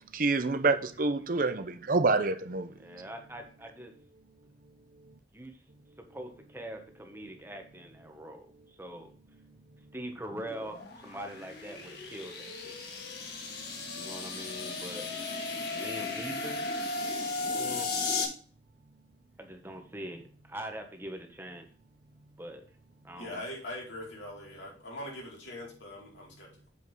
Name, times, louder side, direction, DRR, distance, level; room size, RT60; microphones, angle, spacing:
voice 1, 0.1-2.7, right 3 dB, 50° right, 0.7 m, -27 dB
voice 2, 2.8-3.9 5.3-5.6 6.1-9.1 9.9-12.7 14.0-15.1 15.7-16.6 17.4-18.1 19.4-21.7 22.4-22.7 23.0-23.4, right 1 dB, 15° right, 1.3 m, -43 dB
sound 1, 10.3-18.2, left 3 dB, 55° left, 2.6 m, -35 dB
voice 3, 23.1-26.7, left 1 dB, 80° left, 4.5 m, -42 dB
8.2 x 5.3 x 5.3 m
head